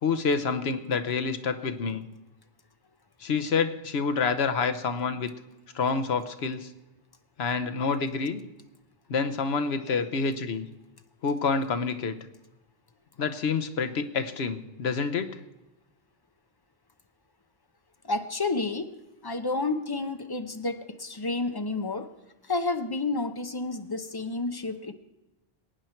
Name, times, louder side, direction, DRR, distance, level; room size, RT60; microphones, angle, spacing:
voice 1, 0.0-2.0 3.2-5.3 5.7-6.7 7.4-8.4 9.1-10.7 11.2-12.2 13.2-15.3, left 5 dB, 80° left, 9 dB, 1.1 m, -28 dB
voice 2, 18.0-18.9 19.2-22.1 22.5-24.9, left 3 dB, 25° left, 8 dB, 0.7 m, -30 dB
21.5 x 9.2 x 4.5 m, 1.0 s
omnidirectional pair, 1.0 m